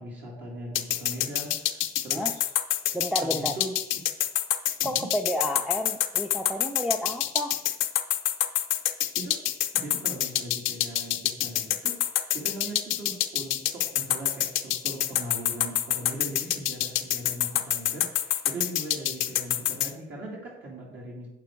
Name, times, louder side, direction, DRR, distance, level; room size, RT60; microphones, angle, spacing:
voice 1, 0.0-2.5 3.2-3.7 4.8-5.1 9.1-9.4 9.7-21.3, right 1 dB, 60° right, -5 dB, 2.6 m, -40 dB
sound 1, 0.8-19.9, left 13 dB, 85° left, 0.7 m, -26 dB
voice 2, 2.9-3.5 4.8-7.6, left 1 dB, 5° right, 1 dB, 0.6 m, -31 dB
8.5 x 7.3 x 4.6 m, 0.92 s
cardioid pair, 90°, 20 cm